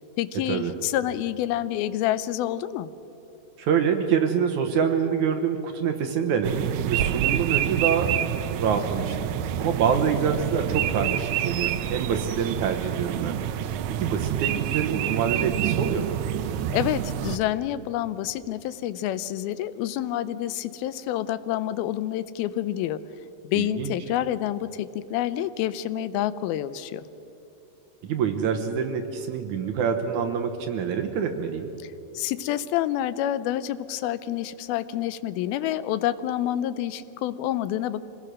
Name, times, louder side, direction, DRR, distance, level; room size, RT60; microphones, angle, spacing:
voice 1, 0.2-2.9 16.7-23.0 23.4-27.0 32.1-38.0, left 12 dB, 90° left, 14 dB, 2.6 m, -28 dB
voice 2, 3.6-9.3 9.6-13.4 13.9-16.2 23.6-23.9 28.0-31.7, right 7 dB, 70° right, 5 dB, 2.1 m, -26 dB
sound 1, 6.4-17.4, right 11 dB, 90° right, 1.7 m, -27 dB
25.5 x 19.0 x 6.3 m, 3.0 s
omnidirectional pair, 4.2 m